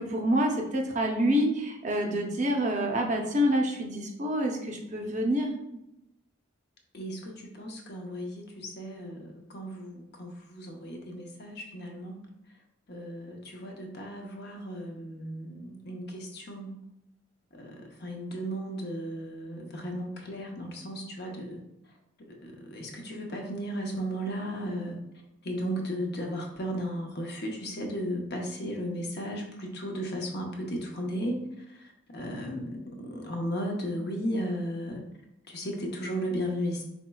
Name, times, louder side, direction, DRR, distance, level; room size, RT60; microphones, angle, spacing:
voice 1, 0.0-5.5, equal, 35° right, 1 dB, 0.6 m, -27 dB
voice 2, 2.6-3.7 6.9-12.2 12.9-16.8 17.5-21.6 22.2-25.0 25.4-35.0 35.5-36.8, equal, 55° left, 1 dB, 0.8 m, -35 dB
4.3 x 4.1 x 2.3 m, 0.84 s
head